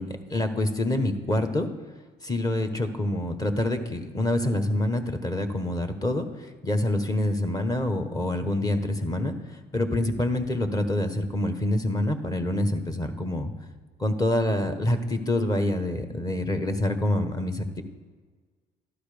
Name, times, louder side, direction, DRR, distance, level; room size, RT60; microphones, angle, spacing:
voice 1, 0.0-1.7 2.2-13.5 14.0-17.8, left 1 dB, 20° left, 7 dB, 1.4 m, -26 dB
13.0 x 11.5 x 5.1 m, 1.4 s
cardioid pair, 110°, 17 cm